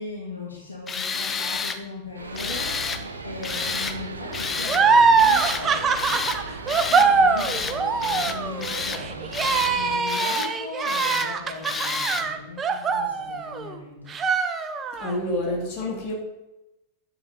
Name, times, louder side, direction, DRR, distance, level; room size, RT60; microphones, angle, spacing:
voice 1, 0.0-6.1 6.6-14.2, left 3 dB, 80° left, -4 dB, 2.2 m, -38 dB
Tools, 0.9-1.8 2.3-3.0 3.4-4.0 4.3-4.8 5.2-5.6 5.9-6.4 6.7-7.1 7.4-7.8 8.0-9.0 9.3-9.7 10.1-10.5 10.8-11.3 11.6-12.3, left 5 dB, 20° left, 0.8 m, -30 dB
sound 1, 2.1-10.0, right 3 dB, 75° right, 0.9 m, -37 dB
sound 2, 4.7-13.7 14.1-15.1, right 5 dB, 25° right, 0.9 m, -22 dB
voice 2, 15.0-16.1, left 1 dB, 45° left, -2 dB, 2.8 m, -28 dB
10.5 x 7.9 x 4.0 m, 0.94 s
figure-of-eight pair, 90°, 0 cm